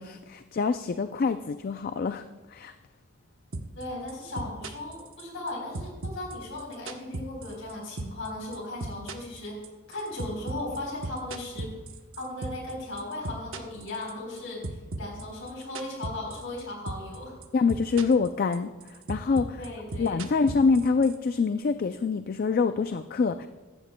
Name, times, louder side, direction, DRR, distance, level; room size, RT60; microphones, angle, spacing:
voice 1, 0.0-2.2 2.5-2.7 17.5-19.6 20.0-23.5, left 4 dB, 40° left, 10 dB, 0.3 m, -26 dB
sound 1, 3.5-3.8 4.1-5.5 5.7-7.7 8.0-8.3 8.5-12.7 13.0-14.4 14.6-16.6 16.9-17.2 17.4-18.3 18.5-21.2, right 2 dB, 65° right, 0.8 m, -36 dB
voice 2, 3.7-9.6 9.9-11.8 12.1-17.3 19.6-20.2, left 2 dB, 60° left, 0 dB, 3.8 m, -37 dB
15.0 x 12.5 x 2.2 m, 1.3 s
head